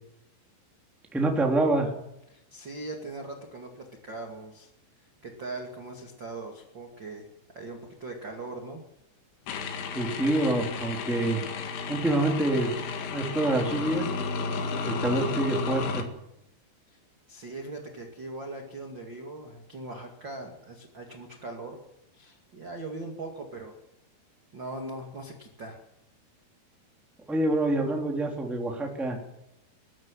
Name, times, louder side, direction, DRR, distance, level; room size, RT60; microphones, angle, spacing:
voice 1, 1.1-1.9 9.9-11.4 11.9-12.7 13.1-14.1 14.9-16.0 27.3-29.2, right 2 dB, ahead, 1 dB, 2.2 m, -26 dB
voice 2, 2.3-4.7 5.0-7.3 7.5-8.8 16.9-17.0 17.3-21.8 22.1-23.7 24.5-25.8, right 2 dB, 35° right, 2 dB, 1.9 m, -40 dB
sound 1, 9.5-16.0, left 4 dB, 90° left, 4.6 m, -32 dB
22.0 x 12.5 x 9.8 m, 0.85 s
omnidirectional pair, 5.5 m